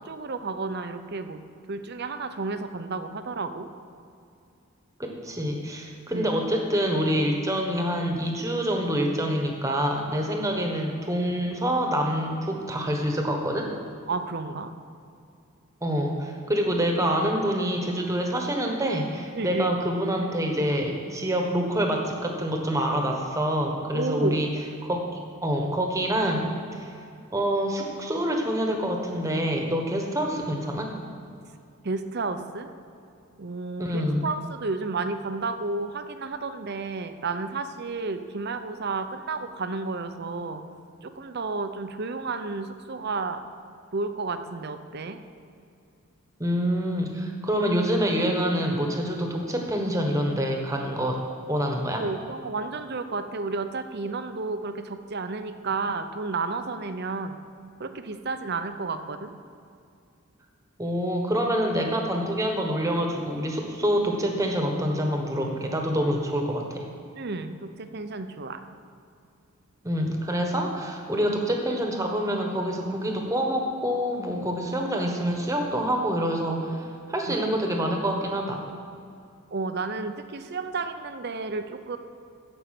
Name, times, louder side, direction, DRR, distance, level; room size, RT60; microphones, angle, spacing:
voice 1, 0.0-1.4 1.7-3.7 6.1-6.3 14.1-14.7 19.3-19.7 23.9-24.4 31.8-32.7 33.4-40.6 41.0-43.4 43.9-45.2 52.0-57.4 57.8-59.3 67.2-68.6 77.3-77.4 79.5-82.0, right 3 dB, 50° right, 9 dB, 0.6 m, -31 dB
voice 2, 5.0-13.7 15.8-24.5 24.8-25.0 25.4-26.9 27.3-30.9 33.8-34.2 46.4-51.2 51.5-52.0 60.8-66.8 69.8-78.6, equal, 15° right, 2 dB, 1.2 m, -26 dB
13.5 x 5.5 x 7.6 m, 2.5 s
head